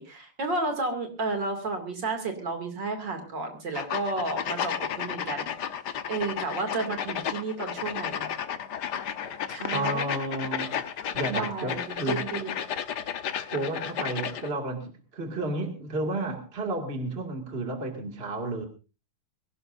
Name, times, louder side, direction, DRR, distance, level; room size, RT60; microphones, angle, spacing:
voice 1, 0.0-5.5 6.1-8.3 9.5-10.2 11.3-12.5, right 3 dB, 55° right, 4 dB, 3.3 m, -32 dB
sound 1, 3.7-14.5, left 8 dB, 55° left, 1.4 m, -32 dB
voice 2, 9.7-10.7 11.1-12.2 13.5-18.7, right 2 dB, 25° right, 3 dB, 2.5 m, -32 dB
22.5 x 17.5 x 2.7 m, 0.33 s
omnidirectional pair, 2.4 m